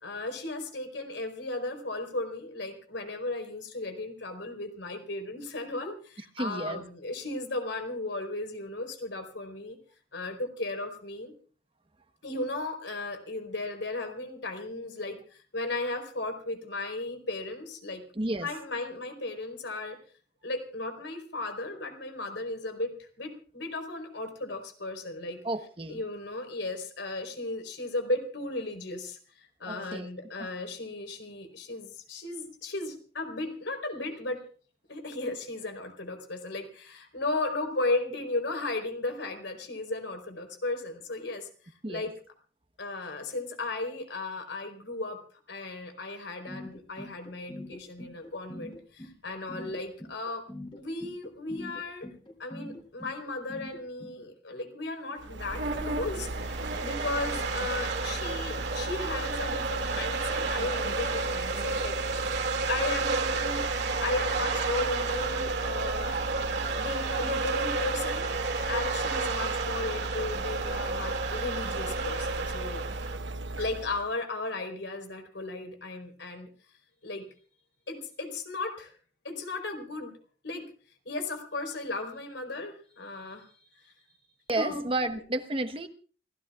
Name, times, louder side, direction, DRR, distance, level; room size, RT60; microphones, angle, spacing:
voice 1, 0.0-9.8 10.1-11.4 12.2-18.0 18.4-20.0 20.4-34.4 34.9-41.5 41.9-42.1 42.8-45.2 45.5-50.4 50.8-52.1 52.4-62.4 62.7-63.7 64.0-66.2 66.8-72.8 73.6-76.5 77.0-77.3 77.9-78.9 79.2-80.1 80.4-80.7 81.0-83.9 84.6-85.2, left 2 dB, 85° left, 5 dB, 4.3 m, -35 dB
voice 2, 6.4-6.9 18.1-18.5 25.4-26.0 29.7-30.1 30.4-30.5 41.8-42.1 84.5-85.9, right 2 dB, 30° right, 8 dB, 1.2 m, -31 dB
sound 1, 46.5-54.1, left 1 dB, 30° left, 3.4 m, -43 dB
sound 2, 55.2-74.1, right 2 dB, 85° right, 1.1 m, -37 dB
sound 3, 55.3-73.2, right 4 dB, 65° right, 2.4 m, -31 dB
29.0 x 16.5 x 2.5 m, 0.40 s
head